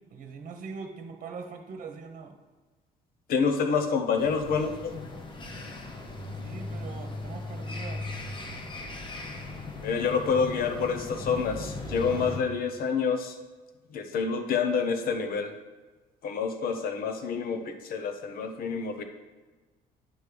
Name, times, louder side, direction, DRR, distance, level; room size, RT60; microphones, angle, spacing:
voice 1, 0.1-2.3 6.4-8.1 16.7-16.8, right 5 dB, 50° right, 5 dB, 1.2 m, -42 dB
voice 2, 3.3-5.1 9.8-13.4 13.9-15.5 16.2-19.0, left 5 dB, 60° left, 7 dB, 1.0 m, -28 dB
sound 1, 4.2-12.4, left 2 dB, 30° left, 1.0 m, -38 dB
9.5 x 3.3 x 6.8 m, 1.3 s
cardioid pair, 110°, 17 cm